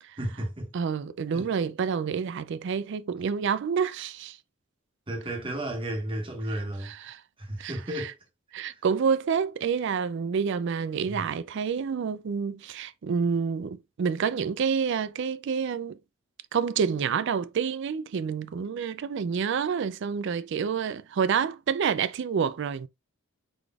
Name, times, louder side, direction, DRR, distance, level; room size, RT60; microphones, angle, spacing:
voice 1, 0.2-0.7 1.3-1.5 5.1-6.9 7.4-8.1 11.1-11.2, right 1 dB, 25° right, 1.2 m, -33 dB
voice 2, 0.7-4.4 6.8-7.2 7.6-8.1 8.5-16.0 16.5-22.9, right 6 dB, 55° right, 0.4 m, -28 dB
4.9 x 4.0 x 2.3 m
head